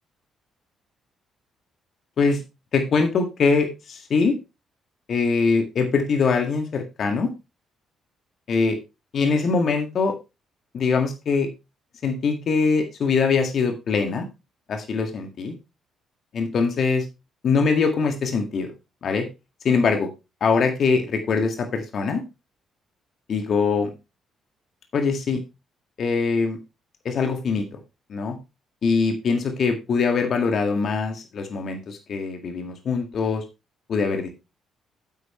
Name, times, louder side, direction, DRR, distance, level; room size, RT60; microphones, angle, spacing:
voice 1, 2.7-4.4 5.1-7.3 8.5-8.8 9.1-10.1 10.7-11.5 12.0-14.3 14.7-15.5 16.3-17.0 17.4-18.7 19.0-19.3 19.6-20.1 20.4-22.2 23.3-23.9 24.9-25.4 26.0-26.6 27.1-27.6 28.1-28.4 28.8-33.4 33.9-34.3, left 4 dB, 50° left, 5 dB, 1.9 m, -22 dB
10.5 x 8.4 x 3.1 m, 0.26 s
figure-of-eight pair, 45°, 0 cm